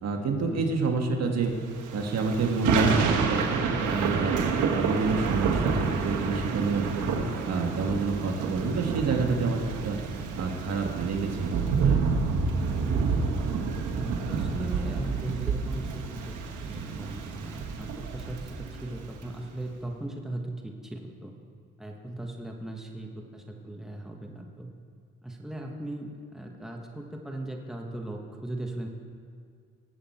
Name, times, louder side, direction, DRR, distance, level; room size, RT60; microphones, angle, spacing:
voice 1, 0.0-1.5 1.9-4.4 4.7-7.1 7.5-10.0 10.4-12.1, right 4 dB, 60° right, 3 dB, 1.6 m, -28 dB
Thunder / Rain, 1.8-19.3, right 5 dB, 80° right, 1.3 m, -29 dB
voice 2, 13.9-21.3 21.8-24.7 25.2-28.9, right 1 dB, ahead, 1 dB, 1.4 m, -38 dB
19.5 x 8.0 x 4.4 m, 2.2 s
cardioid pair, 90°, 30 cm